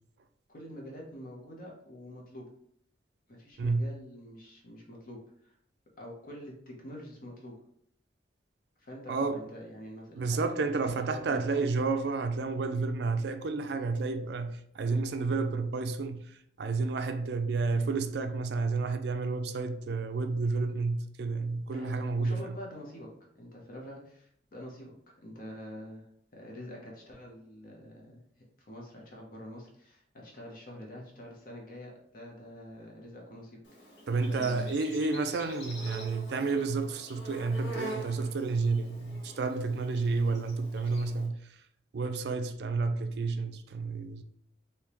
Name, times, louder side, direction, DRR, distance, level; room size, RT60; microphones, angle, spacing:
voice 1, 0.5-2.5 3.3-5.5 6.0-7.5 8.8-11.7 21.7-26.0 26.3-34.0 34.3-34.7, equal, 50° left, 0.8 m, -46 dB
voice 2, 3.6-3.9 9.1-9.5 10.2-22.6 34.1-41.6 41.9-44.2, right 3 dB, 60° right, 0.4 m, -31 dB
Insect, 33.6-41.3, right 1 dB, 70° left, 1.0 m, -45 dB
3.4 x 2.8 x 3.0 m
head